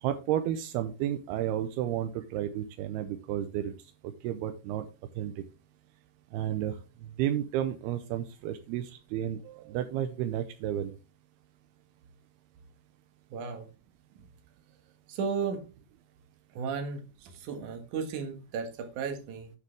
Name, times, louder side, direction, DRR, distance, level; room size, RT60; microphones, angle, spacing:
voice 1, 0.0-3.7 4.0-4.9 5.2-5.4 6.3-6.8 7.2-10.9, right 11 dB, 85° right, 9 dB, 2.3 m, -32 dB
voice 2, 13.3-13.7 14.1-14.2 15.1-15.7 16.5-19.5, right 5 dB, 55° right, 6 dB, 2.4 m, -35 dB
9.5 x 7.7 x 3.4 m, 0.31 s
omnidirectional pair, 5.3 m